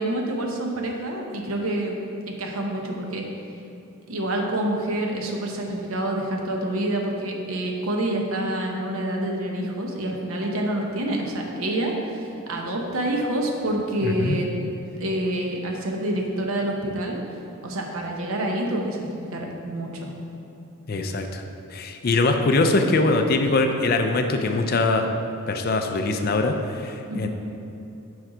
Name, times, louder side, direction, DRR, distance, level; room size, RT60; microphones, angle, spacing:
voice 1, 0.0-2.0 2.3-3.3 4.1-14.5 15.0-17.2 17.6-20.1 27.1-27.3, right 1 dB, 75° right, 1 dB, 0.8 m, -27 dB
voice 2, 14.0-14.4 20.9-21.4 21.7-25.0 25.5-26.5 26.8-27.3, left 3 dB, 45° left, 5 dB, 0.4 m, -22 dB
6.3 x 4.5 x 4.9 m, 2.7 s
head